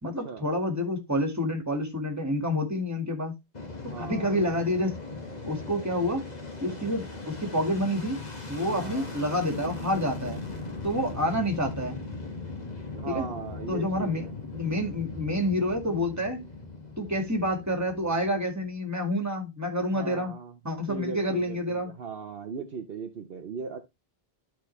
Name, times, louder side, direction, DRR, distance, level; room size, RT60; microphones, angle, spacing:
voice 1, 0.0-3.3 4.0-5.0 5.5-6.2 6.6-8.2 8.5-10.4 10.8-12.0 13.1-13.3 13.7-14.2 14.5-16.5 17.0-20.4 20.6-21.9, left 1 dB, 15° right, 2.0 m, -28 dB
Fixed-wing aircraft airplane, 3.5-18.7, left 3 dB, 40° left, 2.0 m, -39 dB
voice 2, 3.9-4.4 8.7-9.1 13.0-14.3 19.9-20.5 20.9-23.8, right 5 dB, 65° right, 1.0 m, -38 dB
12.0 x 4.5 x 3.2 m
omnidirectional pair, 1.1 m